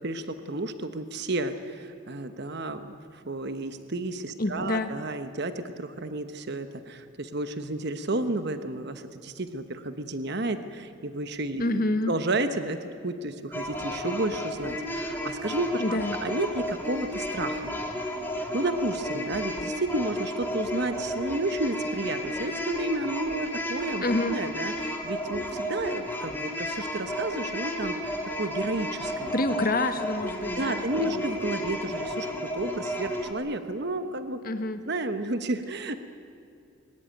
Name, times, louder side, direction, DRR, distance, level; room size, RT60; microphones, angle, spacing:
voice 1, 0.0-11.8 12.1-17.7 18.3-29.6 30.6-34.4 34.9-35.9, right 2 dB, 55° right, 9 dB, 1.1 m, -32 dB
voice 2, 4.4-4.9 11.6-12.1 15.8-16.2 24.0-24.4 29.3-31.2 34.4-34.8, left 2 dB, 45° left, 9 dB, 1.3 m, -28 dB
sound 1, 13.5-33.3, equal, 10° left, 2.3 m, -33 dB
22.0 x 20.0 x 9.1 m, 2.5 s
head